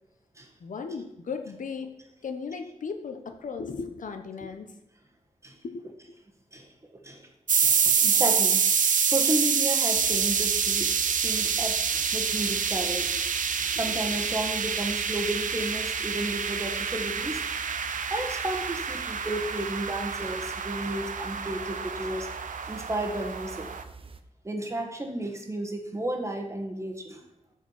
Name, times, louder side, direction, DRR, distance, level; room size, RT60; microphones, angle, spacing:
voice 1, 0.6-1.9 2.2-4.7 5.6-5.8 13.1-13.2 13.6-13.8, left 5 dB, 75° left, 6 dB, 1.1 m, -36 dB
sound 1, 7.5-23.8, right 6 dB, 75° right, 0.7 m, -27 dB
voice 2, 7.6-8.6 9.1-13.2 13.5-17.5 17.7-22.3 22.6-23.7 24.4-27.2, right 1 dB, 20° right, 3 dB, 1.5 m, -33 dB
sound 2, 9.9-24.2, right 4 dB, 40° right, 0.7 m, -47 dB
13.0 x 4.8 x 5.8 m, 0.86 s
wide cardioid pair, 135°, 14 cm